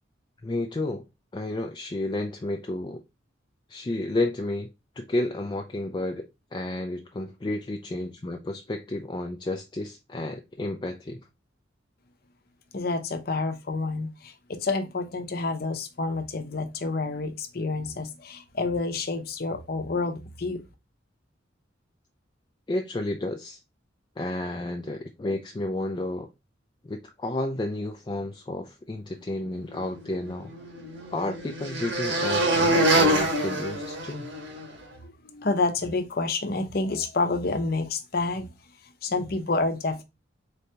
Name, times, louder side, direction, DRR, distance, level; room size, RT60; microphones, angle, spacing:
voice 1, 0.4-1.1 1.3-3.0 3.7-4.7 5.0-11.3 22.7-23.6 24.2-26.3 26.8-30.5 31.1-34.3, left 2 dB, 25° left, 0.3 m, -31 dB
voice 2, 12.7-20.6 35.0-38.5 39.0-40.0, left 3 dB, 55° left, 0.7 m, -29 dB
sound 1, 30.0-34.6, right 1 dB, 75° right, 1.3 m, -25 dB
4.0 x 2.8 x 3.3 m
head